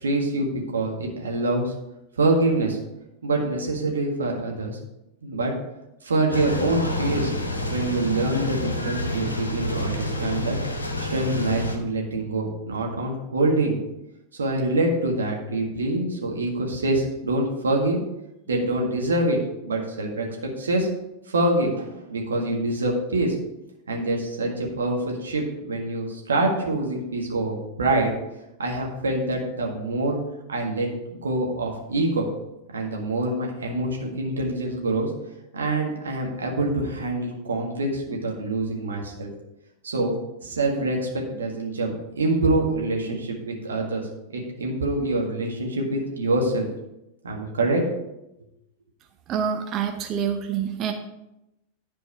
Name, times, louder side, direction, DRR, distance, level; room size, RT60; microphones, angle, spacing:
voice 1, 0.0-1.7 2.2-2.8 3.2-4.8 5.2-5.5 6.0-7.3 7.7-10.6 11.0-13.8 14.3-18.0 18.5-19.4 19.6-20.9 21.3-23.3 23.9-28.1 28.6-30.2 30.5-32.3 32.7-35.1 35.5-39.3 39.8-40.1 40.4-46.6 47.2-47.8, right 2 dB, 70° right, 0 dB, 1.8 m, -25 dB
sound 1, 6.3-11.8, left 2 dB, 80° left, 1.2 m, -28 dB
voice 2, 49.3-50.9, right 8 dB, 35° right, 5 dB, 0.8 m, -26 dB
11.0 x 4.6 x 4.6 m, 0.90 s
figure-of-eight pair, 90°, 0 cm